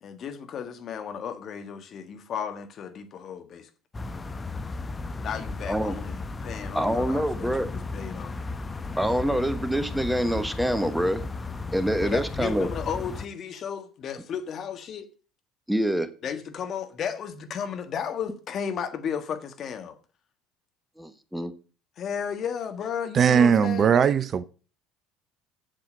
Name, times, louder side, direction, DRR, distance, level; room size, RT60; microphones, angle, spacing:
voice 1, 0.0-3.7 5.2-8.3 12.0-15.1 16.2-20.0 22.0-24.0, left 7 dB, 50° left, 1.5 m, -34 dB
sound 1, 3.9-13.3, left 3 dB, 20° left, 1.0 m, -35 dB
voice 2, 5.7-6.0 6.7-7.7 9.0-11.3 11.7-12.7 15.7-16.1 21.0-21.5, equal, 5° right, 1.2 m, -26 dB
voice 3, 23.1-24.4, right 7 dB, 40° right, 0.6 m, -19 dB
7.7 x 7.3 x 6.6 m
hypercardioid pair, 65°, 0 cm